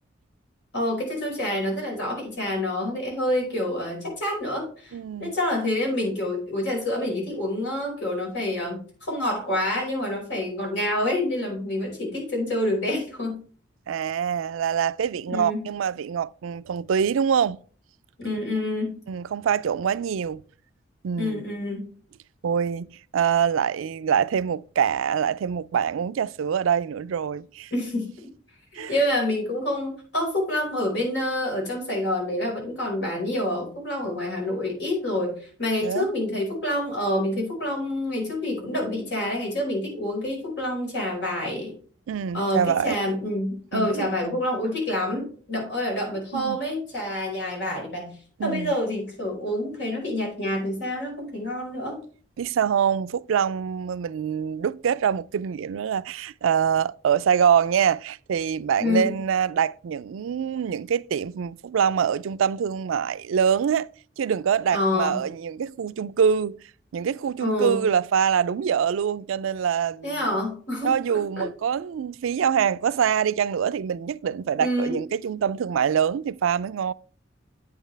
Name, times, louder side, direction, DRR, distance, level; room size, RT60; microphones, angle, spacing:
voice 1, 0.7-13.4 15.3-15.6 18.2-18.9 21.1-21.9 27.7-28.1 28.7-41.7 42.3-48.2 48.4-52.0 58.8-59.1 64.7-65.2 67.4-67.8 70.0-70.9 71.4-71.5 74.6-75.0, left 1 dB, 60° left, 5.0 m, -27 dB
voice 2, 4.9-5.4 13.9-17.6 19.1-20.4 21.0-21.4 22.4-22.9 23.1-27.7 28.7-28.9 35.8-36.1 42.1-43.0 43.7-44.4 46.3-46.6 48.4-48.7 52.4-63.9 64.2-66.6 66.9-70.2 70.8-76.9, right 7 dB, 90° right, 0.4 m, -24 dB
8.9 x 8.6 x 3.3 m
head